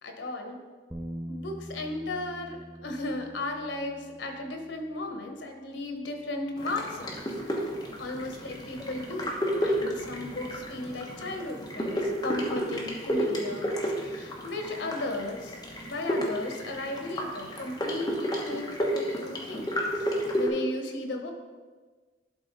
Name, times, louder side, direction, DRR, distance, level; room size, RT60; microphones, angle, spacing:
voice 1, 0.0-0.6 1.3-7.3 8.0-9.3 9.6-15.6 15.9-20.0 20.3-21.3, left 2 dB, 85° left, 4 dB, 1.1 m, -35 dB
Bass guitar, 0.9-7.2, equal, 5° right, 0.4 m, -45 dB
sound 1, 6.6-20.5, equal, 20° left, 1.2 m, -32 dB
11.5 x 3.9 x 4.0 m, 1.4 s
head